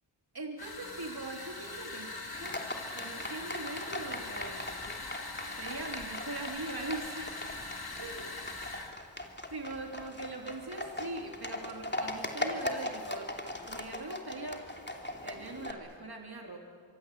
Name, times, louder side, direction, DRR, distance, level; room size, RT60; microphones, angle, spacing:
voice 1, 0.3-2.6 2.9-4.6 5.6-7.4 8.0-8.3 9.5-13.3 13.7-14.6 15.2-16.6, right 2 dB, 55° right, 2 dB, 3.2 m, -41 dB
sound 1, 0.6-8.9, left 3 dB, 50° left, 3.0 m, -42 dB
Livestock farm animals working animals, 2.3-15.7, left 1 dB, 20° left, 3.0 m, -40 dB
25.5 x 24.0 x 8.3 m, 2.1 s
wide cardioid pair, 55°, 46 cm